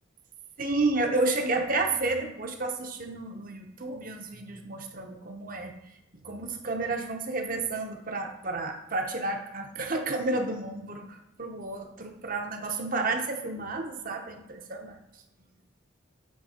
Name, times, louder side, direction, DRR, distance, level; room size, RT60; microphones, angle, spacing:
voice 1, 0.6-5.7 6.2-15.0, right 3 dB, 40° right, 3 dB, 0.8 m, -31 dB
8.0 x 3.8 x 5.0 m, 0.91 s
head